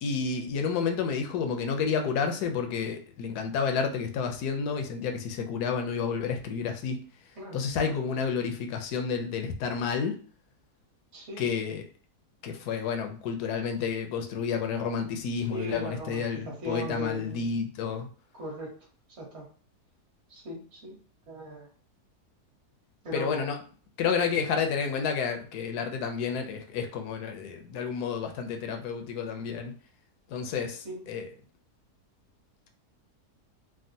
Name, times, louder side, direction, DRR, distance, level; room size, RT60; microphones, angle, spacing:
voice 1, 0.0-7.0 7.5-10.2 11.4-11.9 12.4-18.1 23.1-23.6 24.0-29.7 30.3-31.3, left 6 dB, 75° left, 5 dB, 1.1 m, -30 dB
voice 2, 11.1-11.5 15.5-17.5 18.3-18.7 19.2-19.4 20.3-21.0 21.3-21.7 23.0-23.5 30.8-31.1, equal, 45° right, -2 dB, 1.3 m, -38 dB
3.5 x 2.1 x 2.6 m, 0.43 s
omnidirectional pair, 1.8 m